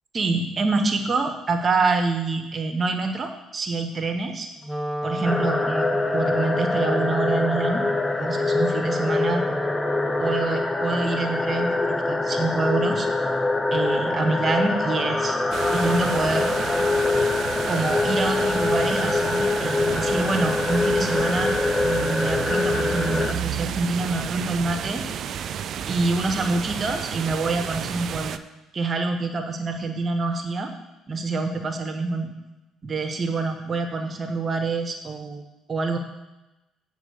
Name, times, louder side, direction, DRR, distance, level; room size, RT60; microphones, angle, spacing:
voice 1, 0.1-4.5 5.0-7.8 8.2-9.4 10.2-13.1 13.7-15.4 15.7-16.5 17.7-21.5 21.8-25.1 25.9-28.4 28.7-30.7 31.1-32.3 32.8-36.0, right 3 dB, 40° right, 6 dB, 1.1 m, -26 dB
Wind instrument woodwind instrument, 4.6-10.6, equal, 5° right, 1.1 m, -32 dB
sound 1, 5.2-23.3, left 2 dB, 20° left, 0.8 m, -24 dB
sound 2, 15.5-28.4, right 9 dB, 55° right, 0.4 m, -31 dB
8.7 x 5.0 x 6.9 m, 0.98 s
hypercardioid pair, 50°, 0 cm